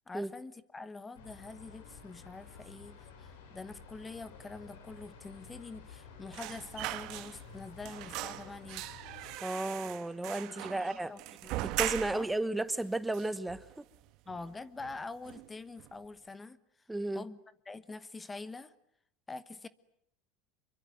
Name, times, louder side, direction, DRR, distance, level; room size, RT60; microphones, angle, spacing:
voice 1, 0.1-8.9 10.4-11.7 12.1-12.3 14.3-16.9 17.1-17.4 17.7-18.7 19.3-19.7, left 3 dB, 15° left, 15 dB, 1.2 m, -45 dB
sound 1, 1.1-9.4, left 5 dB, 85° left, 6.6 m, -52 dB
sound 2, 6.3-7.6 7.8-12.4 12.7-12.8 13.1-14.0 14.3-14.5 14.8-15.5 15.8-16.0, right 17 dB, 60° right, 1.5 m, -40 dB
voice 2, 9.4-11.1 11.6-13.8 16.9-17.2, right 2 dB, 5° right, 13 dB, 1.2 m, -34 dB
26.5 x 23.5 x 9.3 m, 0.74 s
supercardioid pair, 115°, 0 cm